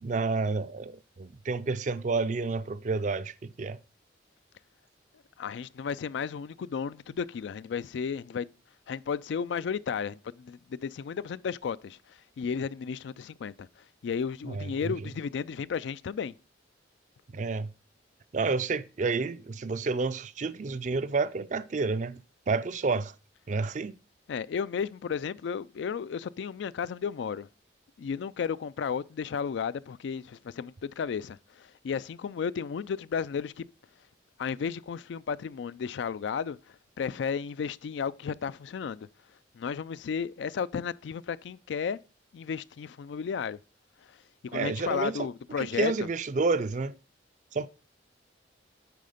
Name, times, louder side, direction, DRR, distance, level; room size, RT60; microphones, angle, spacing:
voice 1, 0.0-3.8 14.5-14.9 17.3-17.7 18.3-22.2 22.5-23.1 23.5-24.0 44.5-45.2 45.6-46.9 47.5-47.7, right 4 dB, 40° right, 0.4 m, -30 dB
voice 2, 5.4-8.5 8.9-13.7 14.0-16.3 24.3-27.5 28.0-33.7 34.4-36.6 37.0-39.1 39.5-42.0 42.3-43.6 44.4-45.9, left 6 dB, 75° left, 0.3 m, -33 dB
9.3 x 4.2 x 5.0 m
head